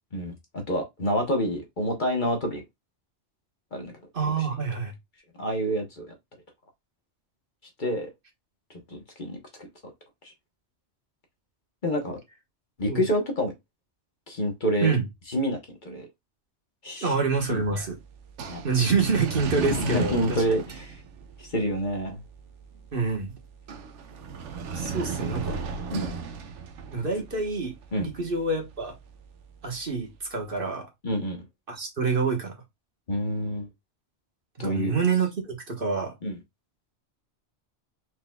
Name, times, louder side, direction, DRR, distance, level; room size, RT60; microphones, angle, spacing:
voice 1, 0.1-2.6 3.7-3.9 5.4-6.1 7.8-8.1 8.9-9.7 10.2-10.3 11.8-12.2 12.8-13.5 14.3-14.9 15.3-16.1 16.8-17.1 17.5-17.9 18.5-18.6 19.6-20.9 21.4-22.2 25.6-26.1 27.9-28.1 31.0-31.4 33.1-33.7 34.6-34.9 36.2-36.4, equal, 45° left, 1.3 m, -28 dB
voice 2, 4.1-4.9 12.9-13.0 14.8-15.0 17.0-18.0 18.6-20.6 22.9-23.3 24.7-25.6 26.9-29.0 29.6-30.9 31.7-32.5 34.6-36.1, right 4 dB, 50° right, 1.4 m, -27 dB
sound 1, 17.3-30.4, right 5 dB, 85° right, 1.1 m, -37 dB
4.5 x 3.9 x 2.3 m
omnidirectional pair, 1.2 m